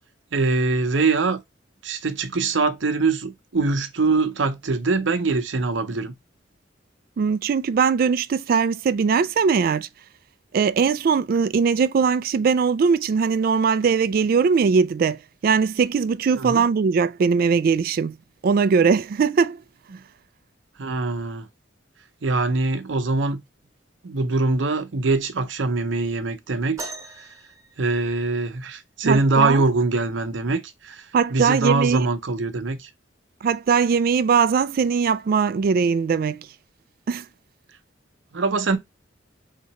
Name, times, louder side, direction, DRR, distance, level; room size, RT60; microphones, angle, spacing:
voice 1, 0.3-1.4 1.8-6.1 16.4-16.6 20.8-21.5 22.2-23.4 24.0-26.9 27.8-31.0 31.3-32.9 38.3-38.8, right 3 dB, 80° right, 0.7 m, -23 dB
voice 2, 7.2-9.9 10.5-18.2 18.4-19.6 29.0-29.6 31.1-32.1 33.4-36.5 37.1-37.2, right 5 dB, 50° right, 0.3 m, -20 dB
sound 1, 26.8-28.7 30.3-30.4 31.2-31.5 32.4-32.5, right 3 dB, 15° right, 0.6 m, -40 dB
3.7 x 2.8 x 4.2 m
head